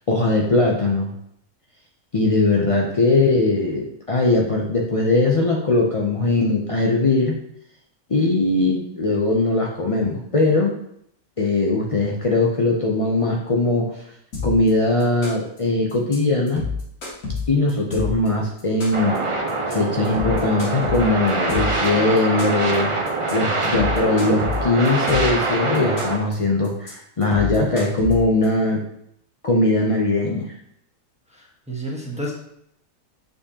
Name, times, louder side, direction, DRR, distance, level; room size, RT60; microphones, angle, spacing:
voice 1, 0.1-1.1 2.1-7.4 8.1-10.8 11.4-13.9 14.4-16.6 17.5-19.2 19.7-22.9 23.3-28.8 29.4-30.5, left 2 dB, 55° left, -1 dB, 0.3 m, -20 dB
sound 1, 14.3-14.7 15.0-15.6 15.9-16.2 16.5-18.3 18.6-19.2 19.5-19.7 20.0-21.9 22.2-22.8 23.1-23.3 23.6-25.4 25.7-26.3 26.6-26.9 27.2-28.5, left 4 dB, 75° left, 2.0 m, -28 dB
sound 2, 18.9-26.2, right 3 dB, 35° right, 0.5 m, -24 dB
voice 2, 31.3-32.3, right 1 dB, 5° right, -4 dB, 1.2 m, -31 dB
6.9 x 5.2 x 2.8 m, 0.74 s
omnidirectional pair, 1.6 m